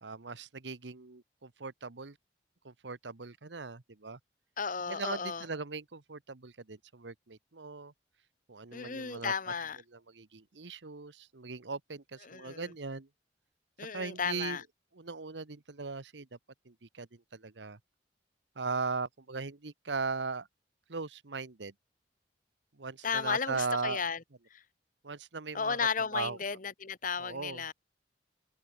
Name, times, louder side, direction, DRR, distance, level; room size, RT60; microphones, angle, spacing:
voice 1, 0.0-2.2 2.6-4.2 4.9-7.9 8.5-9.3 9.9-13.1 13.9-14.6 14.9-16.4 16.6-17.8 18.5-20.5 20.9-21.7 22.8-24.0 25.0-26.4 27.2-27.6, right 4 dB, 90° right, 1.2 m, -39 dB
voice 2, 4.6-5.4 8.7-9.8 12.3-12.7 13.8-14.6 23.0-24.2 24.5-24.6 25.5-27.7, left 6 dB, 50° left, 1.4 m, -34 dB
head